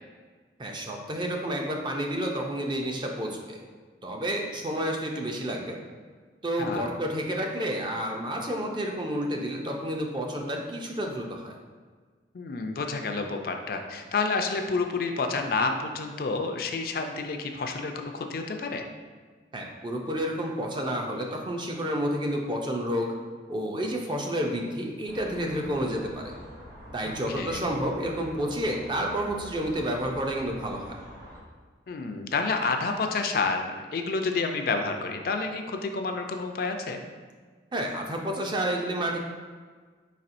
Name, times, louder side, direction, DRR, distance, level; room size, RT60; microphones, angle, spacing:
voice 1, 0.6-3.6 4.0-5.8 6.4-11.6 19.5-23.1 23.5-26.3 26.9-31.0 37.7-39.2, equal, 25° right, 1 dB, 0.4 m, -30 dB
voice 2, 12.3-18.8 27.0-27.6 31.9-37.0, left 4 dB, 55° left, 4 dB, 0.4 m, -29 dB
sound 1, 25.1-31.4, equal, 55° right, 1.2 m, -46 dB
4.7 x 4.2 x 2.5 m, 1.5 s
head